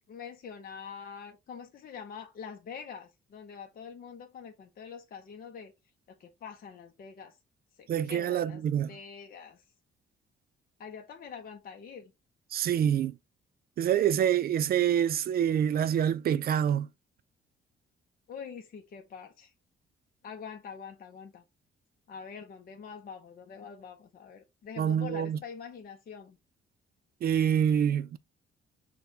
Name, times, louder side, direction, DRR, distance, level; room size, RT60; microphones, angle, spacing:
voice 1, 0.0-5.7 6.1-7.4 7.8-9.6 10.8-12.1 18.3-19.5 20.2-21.4 22.1-26.4, left 6 dB, 50° left, 0.6 m, -45 dB
voice 2, 7.9-9.0 12.5-13.2 13.8-16.9 24.8-25.4 27.2-28.2, right 9 dB, 50° right, 0.4 m, -26 dB
6.3 x 2.2 x 2.7 m
cardioid pair, 90°, 20 cm